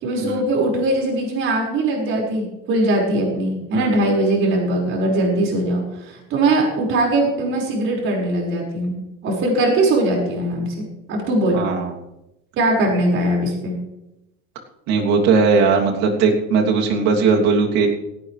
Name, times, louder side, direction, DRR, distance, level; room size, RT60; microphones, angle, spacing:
voice 1, 0.0-11.6 12.6-13.8, right 1 dB, 40° right, -1 dB, 5.5 m, -21 dB
voice 2, 11.5-11.9 14.9-17.9, right 5 dB, 60° right, 0 dB, 3.0 m, -18 dB
17.5 x 16.5 x 3.4 m, 0.91 s
cardioid pair, 165°, 30 cm